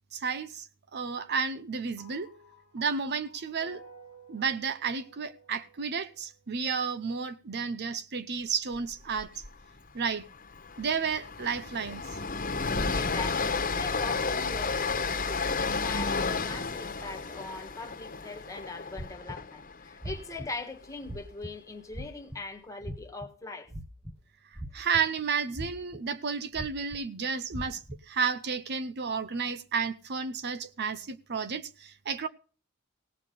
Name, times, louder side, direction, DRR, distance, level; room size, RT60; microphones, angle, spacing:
voice 1, 0.1-0.7 0.9-2.3 2.7-3.8 4.3-9.3 9.9-10.3 10.8-12.0 24.7-32.3, right 5 dB, 55° right, 0.7 m, -32 dB
sound 1, 2.0-6.4, right 3 dB, 90° right, 5.5 m, -54 dB
Train, 9.2-9.5 9.7-9.9 10.3-20.4, left 4 dB, 40° left, 1.4 m, -32 dB
voice 2, 12.9-23.7, left 3 dB, 15° left, 1.7 m, -41 dB
sound 2, 19.0-19.5 20.0-20.5 21.0-21.5 21.9-22.3 22.8-23.3 23.7-24.1 24.6-25.2 25.5-26.0 26.5-27.0 27.5-28.0, equal, 10° right, 0.8 m, -38 dB
17.5 x 5.8 x 6.7 m
head